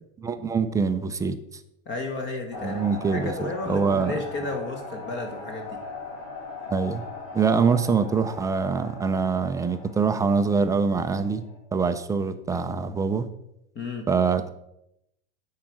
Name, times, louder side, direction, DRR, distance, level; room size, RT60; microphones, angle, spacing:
voice 1, 0.2-1.4 2.6-4.1 6.7-7.0 7.3-11.4 11.7-13.3 14.1-14.5, right 5 dB, 10° right, 9 dB, 0.3 m, -24 dB
voice 2, 1.8-5.8 13.7-14.1, left 2 dB, 30° left, 4 dB, 1.3 m, -33 dB
sound 1, 2.5-11.6, left 4 dB, 55° left, 3.4 m, -39 dB
8.6 x 4.8 x 6.1 m, 0.80 s
supercardioid pair, 130°, 36 cm